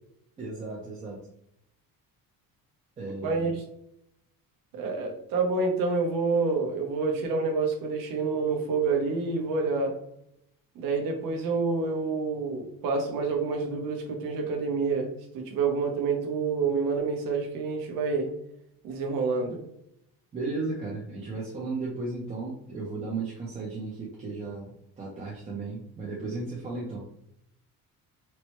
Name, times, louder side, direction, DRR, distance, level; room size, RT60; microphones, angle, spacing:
voice 1, 0.4-1.2 3.0-3.5 20.3-27.0, right 3 dB, 20° right, -4 dB, 0.4 m, -35 dB
voice 2, 3.0-3.6 4.7-9.9 10.7-18.3 18.8-19.6, right 4 dB, 70° right, 2 dB, 0.9 m, -28 dB
4.4 x 2.1 x 3.0 m, 0.77 s
cardioid pair, 180°, 36 cm